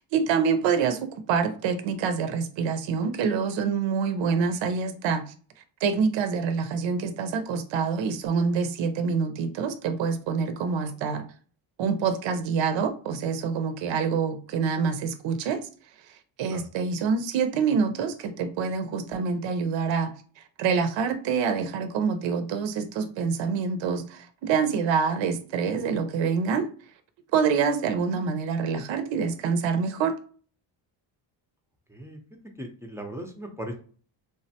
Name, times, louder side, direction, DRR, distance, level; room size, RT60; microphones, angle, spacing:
voice 1, 0.1-5.2 5.8-11.2 11.8-15.6 16.4-20.1 20.6-26.7 27.3-30.2, right 6 dB, 65° right, 0.6 m, -26 dB
voice 2, 10.8-11.2 16.5-16.6 31.9-32.2 32.6-33.7, right 1 dB, 5° right, 0.5 m, -38 dB
3.5 x 2.1 x 2.7 m
cardioid pair, 100°, 49 cm